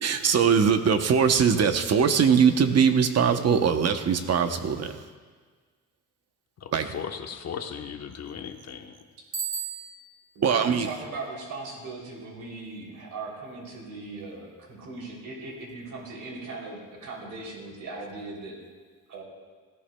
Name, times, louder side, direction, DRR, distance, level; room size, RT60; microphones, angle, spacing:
voice 1, 0.0-5.0 6.7-6.9 10.4-10.9, right 6 dB, 55° right, 7 dB, 0.8 m, -21 dB
voice 2, 6.6-9.0, left 7 dB, 55° left, 5 dB, 1.0 m, -37 dB
Bicycle bell, 9.3-10.3, right 6 dB, 15° right, 1.5 m, -34 dB
voice 3, 10.3-18.6 19.1-19.2, right 3 dB, 80° right, -2 dB, 3.1 m, -38 dB
18.0 x 14.0 x 2.2 m, 1.5 s
cardioid pair, 95°, 30 cm